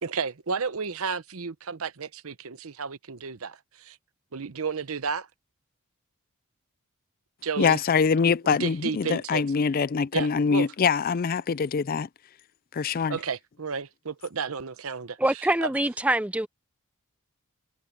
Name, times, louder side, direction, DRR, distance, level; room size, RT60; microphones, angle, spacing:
voice 1, 0.0-4.0 4.3-5.3 7.4-7.8 8.4-9.4 10.1-10.7 13.1-15.7, right 5 dB, 70° right, 0.8 m, -32 dB
voice 2, 7.6-12.1 12.7-13.2, left 5 dB, 40° left, 0.4 m, -24 dB
voice 3, 15.2-16.5, right 1 dB, 5° right, 0.6 m, -24 dB
head